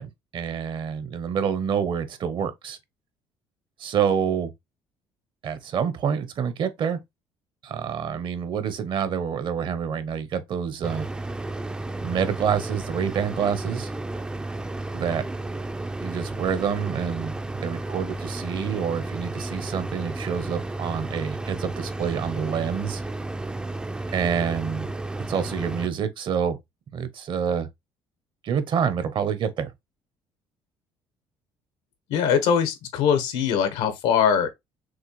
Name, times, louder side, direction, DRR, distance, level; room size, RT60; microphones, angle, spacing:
voice 1, 0.0-2.8 3.8-4.5 5.4-7.0 7.6-11.1 12.0-13.9 14.9-15.2 16.0-23.0 24.1-24.9 25.3-26.6 26.9-27.7 28.4-29.7, right 7 dB, 50° right, 0.8 m, -27 dB
sound 1, 10.8-25.9, right 2 dB, 10° right, 0.4 m, -32 dB
voice 2, 32.1-34.5, left 7 dB, 85° left, 1.2 m, -22 dB
6.2 x 2.3 x 3.1 m
cardioid pair, 100°, 10 cm